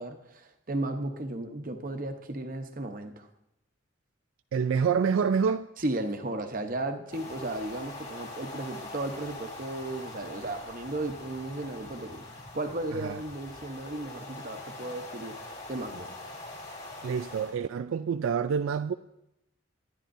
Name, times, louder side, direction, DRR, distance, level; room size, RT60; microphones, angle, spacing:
voice 1, 0.0-3.3 5.8-15.4 15.7-16.3, right 2 dB, 40° right, 0.9 m, -35 dB
voice 2, 4.5-5.7 12.9-13.2 17.0-18.9, right 6 dB, 75° right, 0.3 m, -27 dB
sound 1, 7.1-17.6, left 2 dB, 35° left, 3.0 m, -43 dB
22.5 x 10.5 x 2.6 m
head